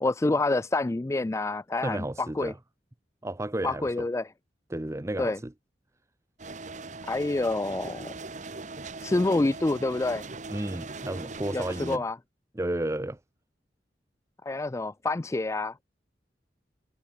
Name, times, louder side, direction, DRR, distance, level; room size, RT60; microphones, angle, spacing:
voice 1, 0.0-2.5 3.6-4.3 5.2-5.4 7.1-8.1 9.0-10.2 11.5-12.2 14.5-15.8, left 2 dB, 15° left, 0.3 m, -27 dB
voice 2, 1.8-2.6 3.2-3.9 4.7-5.5 10.5-12.0 12.5-13.2, right 1 dB, 15° right, 0.7 m, -32 dB
sound 1, 6.4-12.0, right 3 dB, 40° right, 1.5 m, -40 dB
head